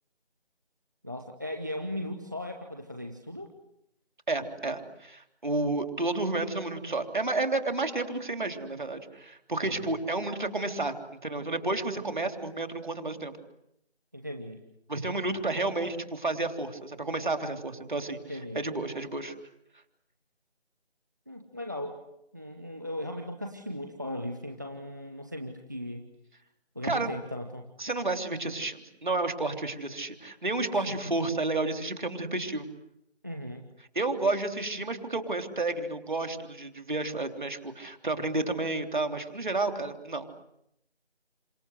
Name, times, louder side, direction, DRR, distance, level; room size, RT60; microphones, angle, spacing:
voice 1, 1.0-3.5 9.6-10.0 14.1-14.6 17.5-17.6 18.3-18.6 21.3-22.0 22.3-26.1 26.7-27.7 30.9-31.1 33.2-33.6, left 1 dB, 15° right, 5 dB, 1.1 m, -38 dB
voice 2, 4.3-10.9 11.2-13.3 14.9-18.2 18.5-19.3 26.8-27.1 27.8-32.7 33.9-40.2, right 2 dB, 45° right, 6 dB, 3.5 m, -31 dB
28.5 x 26.0 x 8.0 m, 0.80 s
figure-of-eight pair, 170°, 33 cm